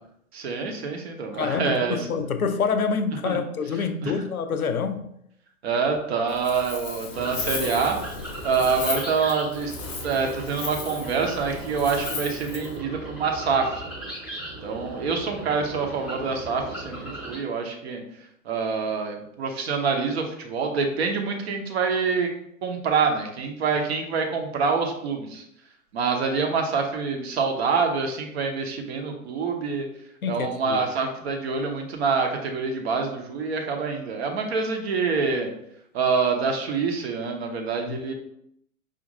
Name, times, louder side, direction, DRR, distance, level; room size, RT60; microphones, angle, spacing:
voice 1, 0.3-2.0 3.3-3.4 4.0-4.1 5.6-8.0 8.4-9.7 10.0-13.8 14.6-18.0 18.5-22.3 22.6-25.4 25.9-29.9 30.3-35.5 35.9-38.1, right 5 dB, 50° right, 0.8 m, -26 dB
voice 2, 1.3-5.1 30.2-30.9 37.8-38.1, left 5 dB, 85° left, 0.5 m, -27 dB
Wind, 6.3-12.8, left 5 dB, 25° left, 0.4 m, -36 dB
sound 1, 7.1-17.4, right 2 dB, ahead, 1.0 m, -37 dB
5.0 x 2.5 x 2.6 m
figure-of-eight pair, 115°, 42 cm